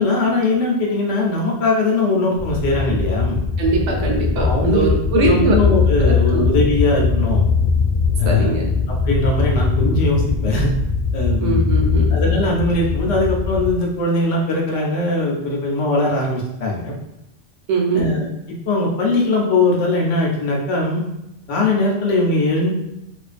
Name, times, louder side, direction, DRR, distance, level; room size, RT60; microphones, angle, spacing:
voice 1, 0.0-3.4 4.3-7.4 8.2-8.5 8.9-10.7 11.1-11.7 12.1-17.0 17.9-21.0 21.5-22.7, left 2 dB, 75° left, -1 dB, 1.0 m, -20 dB
sound 1, 2.4-13.8, left 5 dB, 45° left, 0.6 m, -20 dB
voice 2, 3.6-5.6 6.0-6.5 8.2-8.7 11.4-12.1 17.7-18.1, right 3 dB, 70° right, 0 dB, 0.8 m, -21 dB
2.5 x 2.3 x 2.4 m, 0.85 s
omnidirectional pair, 1.3 m